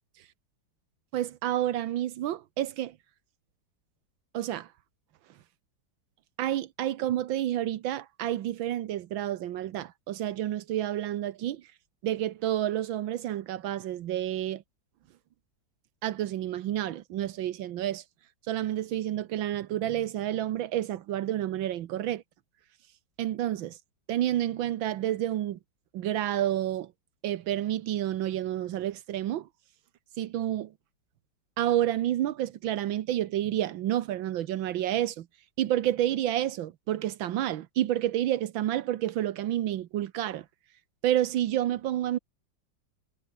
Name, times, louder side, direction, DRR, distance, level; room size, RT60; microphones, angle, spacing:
voice 1, 1.1-2.9 4.3-4.7 6.4-11.6 12.0-14.6 16.0-18.0 18.5-22.2 23.2-23.8 24.1-25.6 25.9-26.9 27.2-29.5 30.2-30.7 31.6-35.3 35.6-40.4 41.0-42.2, right 12 dB, 85° right, 1.7 m, -29 dB
omnidirectional pair, 2.1 m